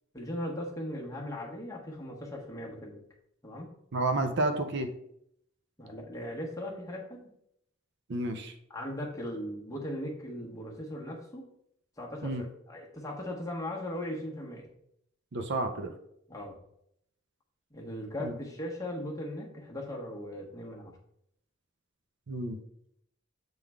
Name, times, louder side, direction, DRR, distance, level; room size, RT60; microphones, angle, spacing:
voice 1, 0.1-3.0 3.4-3.7 5.8-7.3 8.7-11.4 12.0-14.7 16.3-16.6 17.7-20.9, left 1 dB, 15° left, -2 dB, 1.2 m, -38 dB
voice 2, 3.9-4.9 8.1-8.5 12.2-12.4 15.3-15.9 18.2-18.3 22.3-22.6, right 2 dB, 55° right, 7 dB, 0.6 m, -30 dB
7.5 x 3.7 x 3.5 m, 0.73 s
head